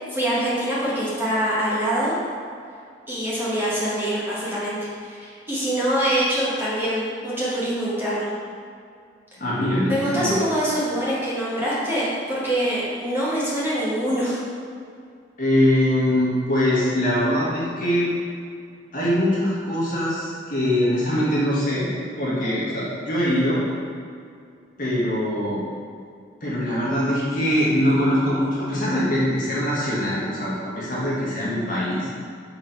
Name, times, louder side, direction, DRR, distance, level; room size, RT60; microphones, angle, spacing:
voice 1, 0.1-2.1 3.1-5.2 5.5-8.3 9.9-14.4, right 1 dB, 10° right, -9 dB, 1.5 m, -24 dB
voice 2, 9.4-10.4 15.4-18.1 18.9-23.6 24.8-25.6 26.4-32.1, equal, 45° left, -7 dB, 1.6 m, -22 dB
6.6 x 4.0 x 4.6 m, 2.3 s
head